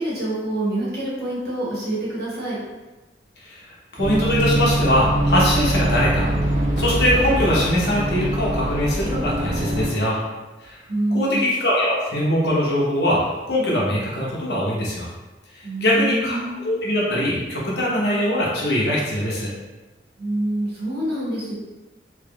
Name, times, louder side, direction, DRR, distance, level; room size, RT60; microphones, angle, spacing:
voice 1, 0.0-2.6 10.9-11.4 15.6-16.7 20.2-21.5, right 1 dB, 55° right, -7 dB, 1.2 m, -26 dB
voice 2, 3.9-6.3 6.8-10.2 10.6-10.8 11.1-13.2 13.5-15.1 15.5-19.5, left 1 dB, 65° left, -5 dB, 0.9 m, -22 dB
sound 1, 4.0-9.9, right 1 dB, 40° right, 0.7 m, -23 dB
3.4 x 3.0 x 2.3 m, 1.1 s
head